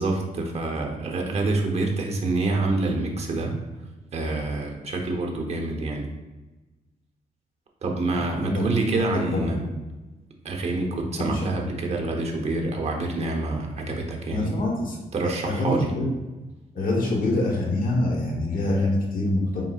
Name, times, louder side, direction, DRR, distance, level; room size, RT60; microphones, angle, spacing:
voice 1, 0.0-3.6 4.1-6.1 7.8-9.6 10.4-14.6 15.1-15.9, right 2 dB, 45° right, 1 dB, 0.9 m, -27 dB
voice 2, 8.1-8.6 9.0-9.7 11.2-11.5 14.3-15.0 15.2-16.1 16.7-19.6, left 1 dB, 65° left, -2 dB, 1.2 m, -25 dB
4.4 x 3.7 x 2.4 m, 1.1 s
cardioid pair, 90°, 15 cm